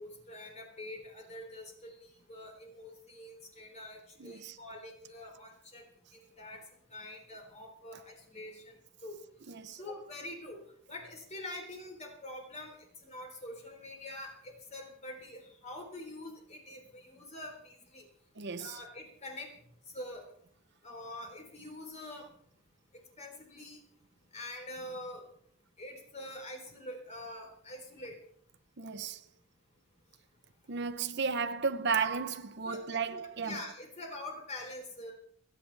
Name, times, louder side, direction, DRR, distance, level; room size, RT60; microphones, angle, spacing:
voice 1, 0.0-5.8 6.1-6.6 6.9-9.2 9.8-10.6 10.9-18.1 18.6-19.5 19.9-20.3 20.8-22.3 23.2-23.8 24.3-25.2 25.8-28.2 32.6-35.1, left 1 dB, 35° left, 3.7 m, -45 dB
voice 2, 4.2-4.6 9.6-9.8 18.4-18.8 28.8-29.2 30.7-33.6, right 5 dB, 60° right, 0.9 m, -34 dB
30.0 x 10.0 x 3.4 m
head